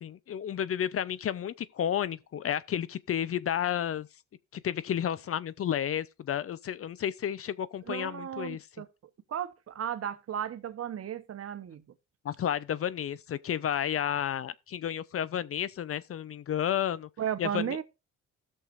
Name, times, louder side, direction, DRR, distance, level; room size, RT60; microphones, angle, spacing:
voice 1, 0.0-4.1 4.5-8.7 12.2-17.1 17.4-17.8, left 9 dB, 50° left, 0.6 m, -31 dB
voice 2, 7.9-8.9 9.3-11.8 17.2-17.8, right 9 dB, 50° right, 1.0 m, -34 dB
16.0 x 6.6 x 2.5 m
cardioid pair, 90°, 30 cm